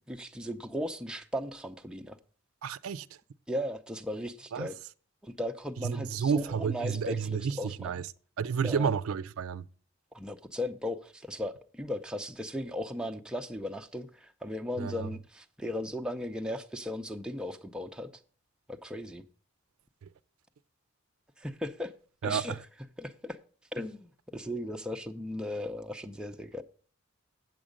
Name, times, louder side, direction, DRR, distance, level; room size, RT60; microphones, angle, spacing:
voice 1, 0.1-2.2 3.5-4.8 5.2-8.0 8.6-8.9 10.1-18.1 18.7-19.2 21.4-21.9 22.2-22.6 23.0-23.4 23.7-26.6, left 1 dB, 5° right, 0.5 m, -37 dB
voice 2, 2.6-3.1 4.5-4.7 5.8-8.0 8.4-9.6 14.8-15.1 22.2-22.6, right 6 dB, 80° right, 0.4 m, -31 dB
8.0 x 7.4 x 5.2 m
head